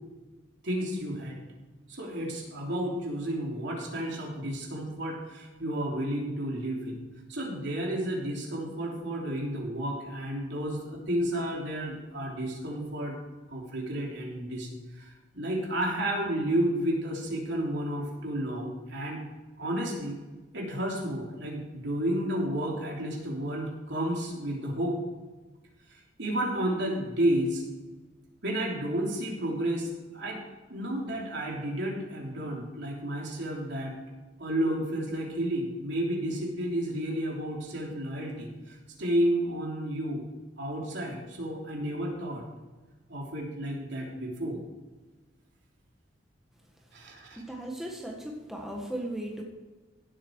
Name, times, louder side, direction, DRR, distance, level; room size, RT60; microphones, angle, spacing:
voice 1, 0.6-1.4 1.9-6.9 7.3-13.2 13.5-14.7 14.9-19.2 19.6-20.2 20.5-25.0 26.2-27.6 28.4-30.4 30.7-33.9 34.4-40.2 40.6-42.5 43.1-44.6 46.9-47.4, right 1 dB, 65° right, -2 dB, 3.4 m, -31 dB
voice 2, 47.3-49.4, right 1 dB, ahead, -1 dB, 1.6 m, -37 dB
16.5 x 7.9 x 4.7 m, 1.3 s
head